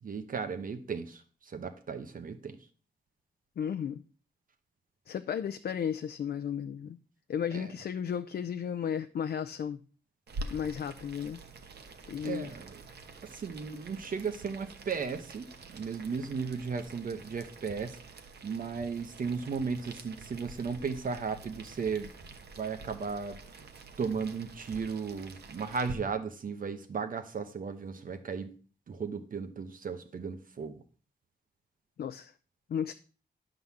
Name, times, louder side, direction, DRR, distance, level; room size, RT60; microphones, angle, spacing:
voice 1, 0.0-2.6 7.5-7.7 12.2-12.8 13.2-18.0 18.4-22.1 22.6-23.4 24.0-28.5 28.9-30.8, right 5 dB, 55° right, 8 dB, 0.9 m, -35 dB
voice 2, 3.6-4.0 5.1-7.0 7.3-9.8 10.5-11.4 12.1-12.5 32.0-32.3 32.7-32.9, left 8 dB, 65° left, 9 dB, 0.5 m, -34 dB
Boiling, 10.3-25.9, right 2 dB, 75° right, 1.1 m, -47 dB
11.0 x 3.9 x 7.1 m, 0.40 s
wide cardioid pair, 170°, 17 cm